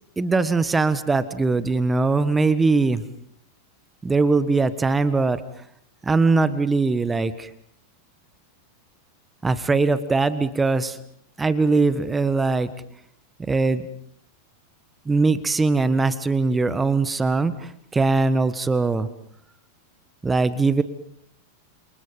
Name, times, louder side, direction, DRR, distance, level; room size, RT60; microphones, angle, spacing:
voice 1, 0.2-3.0 4.0-5.4 6.0-7.5 9.4-11.0 11.4-12.7 13.4-13.8 15.0-19.1 20.2-20.8, right 3 dB, 10° right, 14 dB, 1.5 m, -21 dB
30.0 x 28.0 x 5.4 m, 0.69 s
figure-of-eight pair, 90°, 0 cm